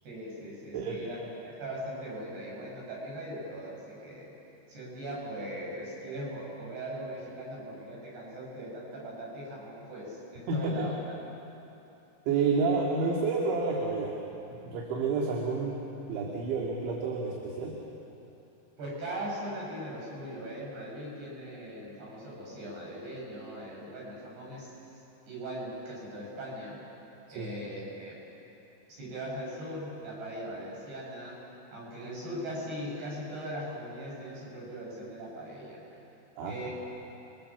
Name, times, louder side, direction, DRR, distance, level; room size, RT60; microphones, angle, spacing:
voice 1, 0.0-4.3 4.7-11.0 18.8-24.7 25.3-26.8 27.3-28.2 28.9-31.4 31.7-35.8 36.4-36.7, right 1 dB, 55° right, -5 dB, 9.1 m, -40 dB
voice 2, 10.5-10.9 12.3-14.1 14.5-15.8 16.1-17.8 27.4-27.5 36.4-36.5, right 4 dB, 75° right, -2 dB, 4.5 m, -29 dB
30.0 x 23.0 x 7.2 m, 2.9 s
omnidirectional pair, 5.4 m